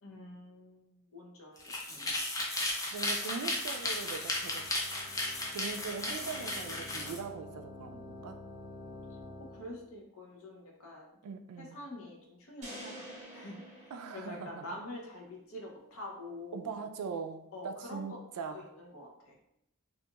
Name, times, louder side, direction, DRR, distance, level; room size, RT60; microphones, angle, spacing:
voice 1, 0.0-2.1 9.4-11.2 11.6-16.7 17.5-18.2 18.5-19.4, left 1 dB, 70° left, -1 dB, 0.7 m, -46 dB
sound 1, 1.6-7.2, left 2 dB, 15° left, 0.3 m, -35 dB
voice 2, 2.9-4.7 5.5-8.4 11.2-11.8 13.9-14.6 16.5-18.7, right 5 dB, 85° right, 8 dB, 0.3 m, -41 dB
sound 2, 3.0-9.8, left 2 dB, 35° left, 1.1 m, -50 dB
sound 3, 12.6-14.9, right 1 dB, 30° right, 0.7 m, -48 dB
2.5 x 2.3 x 2.8 m, 0.78 s
head